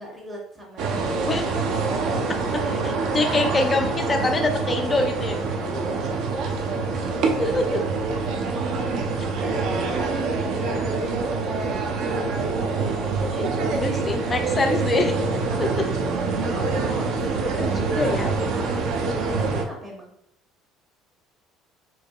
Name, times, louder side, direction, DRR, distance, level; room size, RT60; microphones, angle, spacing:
voice 1, 0.0-1.5 5.6-6.1 6.7-7.0 8.3-11.8 15.5-15.6 16.4-17.6 18.5-20.1, right 1 dB, 15° right, -2 dB, 0.7 m, -39 dB
sound 1, 0.8-19.6, right 4 dB, 50° right, 0.5 m, -25 dB
voice 2, 2.5-5.4 7.4-7.8 13.2-15.1 15.6-15.9 17.4-18.3, left 2 dB, 15° left, 5 dB, 0.3 m, -25 dB
4.7 x 2.6 x 2.2 m, 0.73 s
cardioid pair, 180°, 0 cm